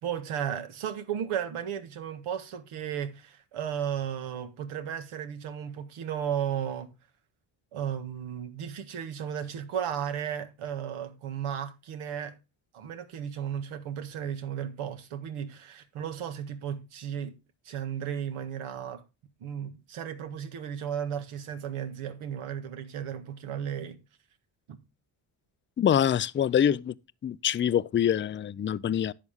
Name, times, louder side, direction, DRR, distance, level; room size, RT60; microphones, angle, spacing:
voice 1, 0.0-6.9 7.7-12.3 12.7-17.3 17.6-19.0 19.4-24.0, right 9 dB, 80° right, 1.7 m, -34 dB
voice 2, 25.8-26.9 27.2-29.1, left 9 dB, 25° left, 0.4 m, -25 dB
11.0 x 7.1 x 3.5 m
cardioid pair, 80°, 49 cm